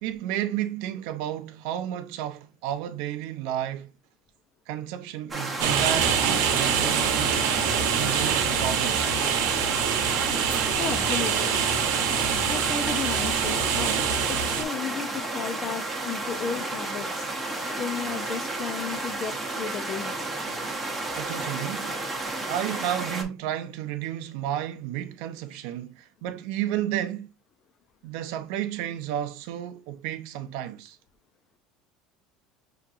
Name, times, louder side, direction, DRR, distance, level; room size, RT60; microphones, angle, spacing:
voice 1, 0.0-3.9 4.7-7.5 7.9-9.2 21.1-22.0 22.5-27.3 28.0-31.0, right 11 dB, 70° right, 0.6 m, -32 dB
sound 1, 5.3-23.2, right 2 dB, 5° right, 0.9 m, -32 dB
sound 2, 5.6-14.6, right 7 dB, 85° right, 0.9 m, -25 dB
voice 2, 10.7-11.5 12.5-14.0 14.3-17.3 17.8-20.1, left 7 dB, 35° left, 0.4 m, -34 dB
5.8 x 2.9 x 2.5 m
cardioid pair, 155°, 0 cm